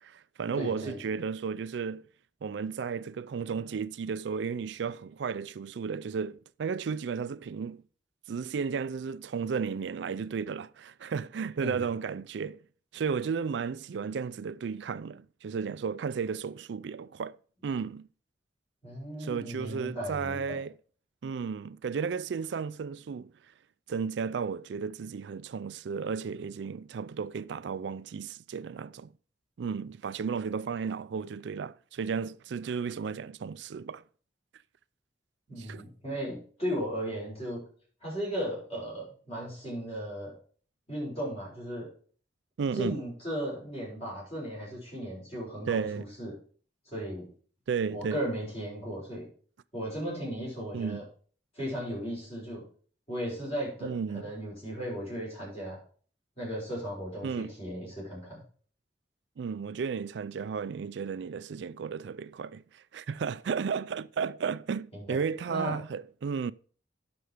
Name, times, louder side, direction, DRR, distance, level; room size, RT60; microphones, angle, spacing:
voice 1, 0.0-2.1 2.4-7.8 8.3-12.6 12.9-17.4 17.6-18.1 19.2-20.8 21.2-23.3 23.9-29.1 29.6-34.0 35.6-35.8 42.6-43.0 45.7-46.0 47.7-48.2 50.7-51.0 53.8-54.3 57.2-57.5 59.4-66.5, right 6 dB, 70° right, 0.4 m, -34 dB
voice 2, 0.6-1.0 11.6-11.8 18.8-20.6 35.5-37.6 38.0-40.3 40.9-41.9 42.7-46.3 46.9-47.3 47.9-49.3 49.7-51.0 51.5-52.6 53.1-55.8 56.4-58.4 64.9-65.2 65.5-65.7, equal, 35° left, 6.0 m, -36 dB
9.3 x 6.8 x 4.9 m
head